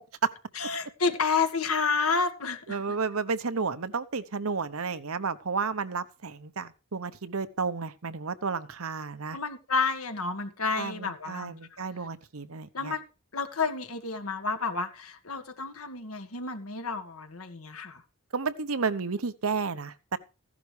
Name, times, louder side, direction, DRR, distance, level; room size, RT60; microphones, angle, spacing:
voice 1, 0.5-2.8 9.3-11.8 12.7-13.0 13.3-18.0, left 4 dB, 90° left, 1.7 m, -30 dB
voice 2, 2.7-9.4 10.7-12.9 18.3-20.2, right 5 dB, 80° right, 0.9 m, -32 dB
15.5 x 11.0 x 3.4 m
head